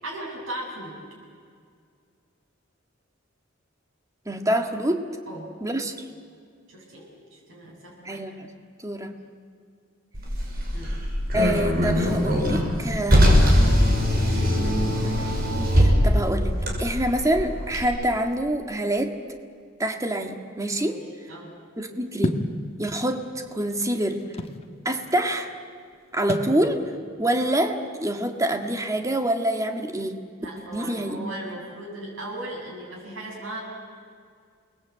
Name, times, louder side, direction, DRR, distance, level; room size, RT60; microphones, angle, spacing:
voice 1, 0.0-1.0 5.3-5.5 6.7-8.2 10.7-11.0 20.8-21.0 21.3-21.5 30.4-33.6, right 1 dB, 80° right, -4 dB, 7.7 m, -37 dB
voice 2, 4.2-5.0 5.6-5.9 8.0-8.5 8.8-9.1 11.3-13.3 14.6-16.5 16.8-19.1 19.8-21.0 21.8-22.4 22.8-24.2 24.8-25.5 26.1-26.8 27.2-30.2 30.7-31.6, right 1 dB, 15° right, 5 dB, 1.8 m, -26 dB
Car, 10.1-17.8, equal, 50° right, 6.0 m, -21 dB
sound 1, 22.2-22.6 23.4-24.6 26.3-26.6, left 1 dB, 30° left, 1.5 m, -28 dB
29.5 x 20.5 x 8.7 m, 2.1 s
head